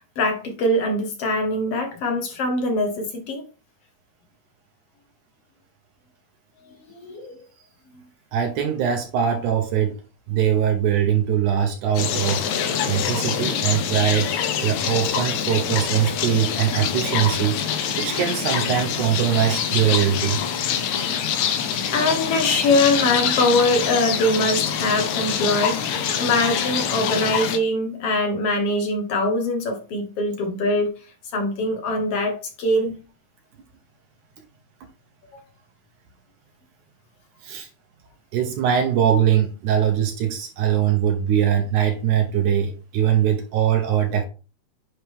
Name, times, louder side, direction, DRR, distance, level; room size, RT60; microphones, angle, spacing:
voice 1, 0.2-3.4 6.7-7.4 21.1-21.2 21.9-25.8 26.2-30.9 31.3-33.0, left 1 dB, 55° left, 2.0 m, -23 dB
voice 2, 8.3-10.0 10.3-14.3 14.6-20.4 37.4-37.7 38.3-44.3, right 9 dB, 75° right, 2.4 m, -22 dB
sound 1, 12.0-27.6, left 8 dB, 75° left, 2.2 m, -25 dB
9.6 x 4.9 x 3.6 m
omnidirectional pair, 3.6 m